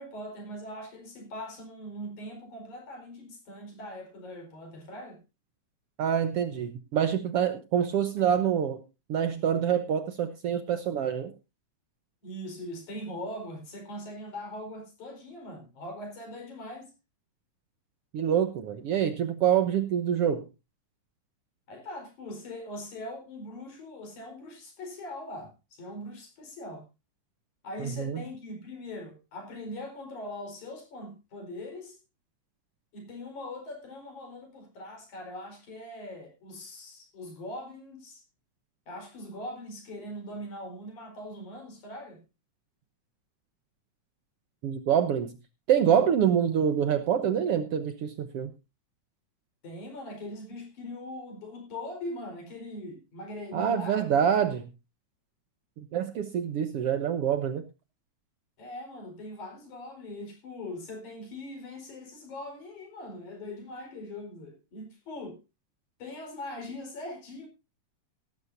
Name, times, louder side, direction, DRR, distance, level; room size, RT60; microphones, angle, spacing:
voice 1, 0.0-5.2 12.2-16.9 21.7-26.9 27.6-32.0 32.9-38.2 38.9-42.2 49.6-54.2 58.6-65.4 66.0-67.5, left 1 dB, 85° left, 5.9 m, -41 dB
voice 2, 6.0-8.8 9.1-11.3 18.1-20.5 27.8-28.2 44.6-45.4 45.7-48.5 53.5-54.7 55.8-57.6, right 8 dB, 65° right, 1.7 m, -26 dB
17.5 x 13.0 x 2.7 m
omnidirectional pair, 3.3 m